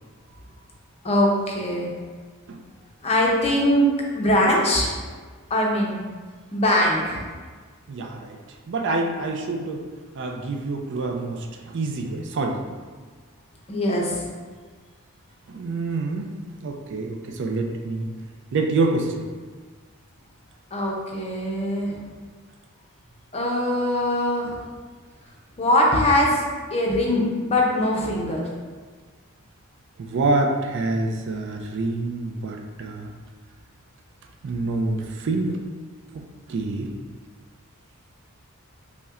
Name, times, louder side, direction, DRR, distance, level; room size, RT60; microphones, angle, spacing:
voice 1, 1.0-1.9 3.0-3.9 4.1-5.0 5.5-6.0 6.5-7.2 13.7-14.2 20.7-22.0 23.3-24.7 25.6-26.4 26.7-28.4, left 1 dB, 30° left, -2 dB, 0.5 m, -22 dB
voice 2, 7.9-8.4 8.7-9.8 10.2-11.4 11.7-12.6 15.5-16.3 16.6-18.1 18.5-19.2 30.0-33.1 34.4-35.6 36.5-36.9, right 3 dB, 55° right, 2 dB, 0.3 m, -26 dB
5.4 x 2.1 x 2.4 m, 1.5 s
head